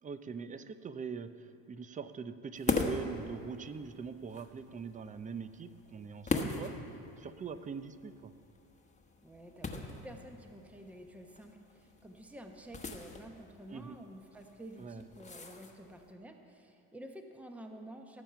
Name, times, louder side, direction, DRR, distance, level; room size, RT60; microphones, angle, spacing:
voice 1, 0.0-6.7 7.2-8.3 13.7-14.0 14.8-15.0, right 5 dB, 20° right, 12 dB, 0.5 m, -43 dB
sound 1, 2.5-16.1, left 3 dB, 20° left, 1.2 m, -41 dB
voice 2, 9.2-18.2, right 1 dB, 5° right, 4 dB, 0.9 m, -50 dB
18.0 x 7.2 x 5.7 m, 2.8 s
supercardioid pair, 100°, 37 cm